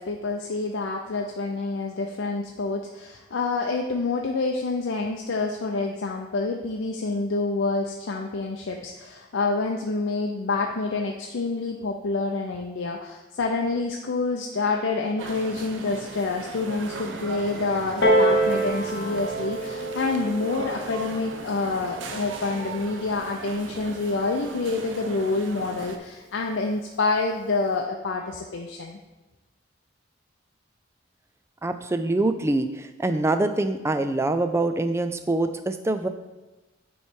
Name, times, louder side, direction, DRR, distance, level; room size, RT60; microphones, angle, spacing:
voice 1, 0.0-29.0, left 3 dB, 85° left, 1 dB, 0.5 m, -27 dB
sound 1, 15.2-26.0, right 4 dB, 85° right, 0.6 m, -38 dB
sound 2, 16.8-19.7, right 1 dB, ahead, 0.7 m, -42 dB
Piano, 18.0-23.2 24.0-24.1, right 1 dB, 60° left, 1.1 m, -27 dB
voice 2, 31.6-36.1, right 2 dB, 15° right, 9 dB, 0.3 m, -25 dB
8.8 x 3.1 x 4.4 m, 1.1 s
head